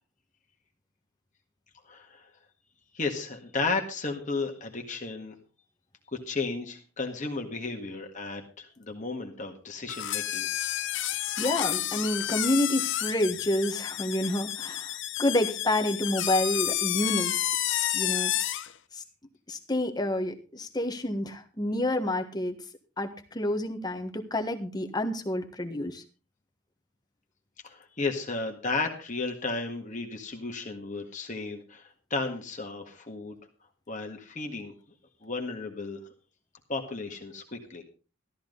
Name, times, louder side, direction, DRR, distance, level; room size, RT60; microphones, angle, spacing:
voice 1, 1.9-2.3 2.9-5.4 6.1-10.5 27.6-33.4 33.9-34.7 35.2-36.0 36.7-37.8, left 3 dB, 35° left, 3 dB, 1.8 m, -34 dB
sound 1, 9.9-18.7, left 13 dB, 55° left, 0.8 m, -30 dB
voice 2, 11.4-17.5 17.9-18.3 18.9-19.0 19.5-22.6 23.0-26.0, left 1 dB, 20° left, 5 dB, 1.4 m, -29 dB
14.0 x 13.0 x 3.9 m, 0.35 s
head